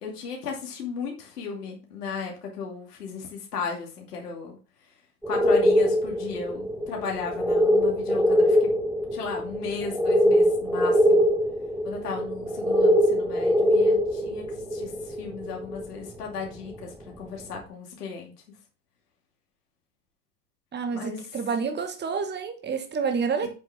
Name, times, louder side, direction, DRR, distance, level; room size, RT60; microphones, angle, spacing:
voice 1, 0.0-4.6 5.3-8.7 9.1-11.3 11.8-14.4 14.7-18.3 20.9-21.3 23.4-23.5, left 5 dB, 75° left, 2.6 m, -35 dB
sound 1, 5.2-16.3 16.7-16.8, equal, 5° right, 1.4 m, -23 dB
voice 2, 20.7-23.5, right 5 dB, 20° right, 1.6 m, -28 dB
8.8 x 7.0 x 3.6 m
figure-of-eight pair, 80°, 47 cm